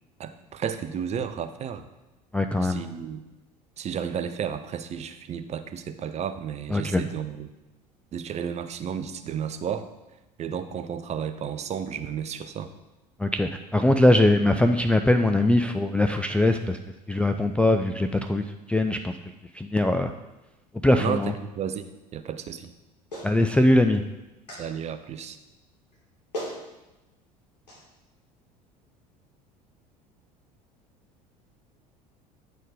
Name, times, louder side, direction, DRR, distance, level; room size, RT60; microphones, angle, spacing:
voice 1, 0.2-1.9 2.6-3.2 3.8-7.5 8.1-9.9 10.4-12.7 21.0-22.7 24.6-25.4, right 8 dB, 30° right, 11 dB, 0.6 m, -32 dB
voice 2, 2.3-2.8 6.7-7.0 13.2-16.8 17.1-19.1 19.5-20.1 20.8-21.3 23.2-24.0, left 1 dB, 5° left, 4 dB, 0.4 m, -21 dB
Clapping, 23.1-23.3 24.5-24.7 25.9-26.0 26.3-26.6 27.7-27.8, equal, 75° left, 2.6 m, -35 dB
9.2 x 4.3 x 5.0 m, 1.0 s
figure-of-eight pair, 65°, 21 cm